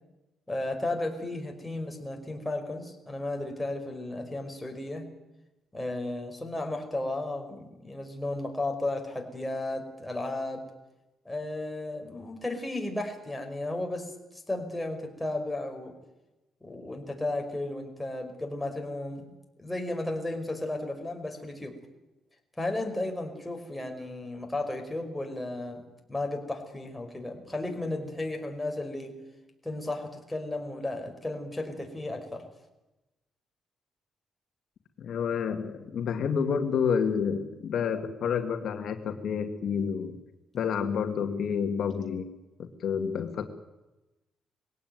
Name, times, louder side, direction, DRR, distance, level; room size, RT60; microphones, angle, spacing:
voice 1, 0.5-5.1 5.7-10.6 11.3-16.0 16.6-21.8 22.6-25.8 26.1-29.2 29.6-32.5, left 2 dB, 10° left, 3 dB, 5.3 m, -34 dB
voice 2, 35.0-40.2 40.5-42.3 42.6-43.5, left 6 dB, 65° left, 5 dB, 2.1 m, -29 dB
22.0 x 17.5 x 9.3 m, 1.0 s
cardioid pair, 90°, 0 cm